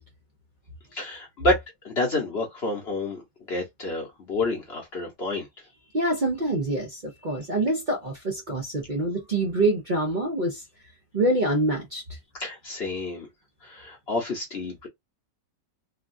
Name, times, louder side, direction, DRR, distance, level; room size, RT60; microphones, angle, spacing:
voice 1, 0.9-3.2 3.5-5.5 7.3-7.4 12.4-13.3 13.6-14.9, left 2 dB, 45° left, 0.9 m, -29 dB
voice 2, 5.9-10.6 11.1-12.0, right 2 dB, 60° right, 0.4 m, -25 dB
3.7 x 2.3 x 2.5 m
omnidirectional pair, 2.0 m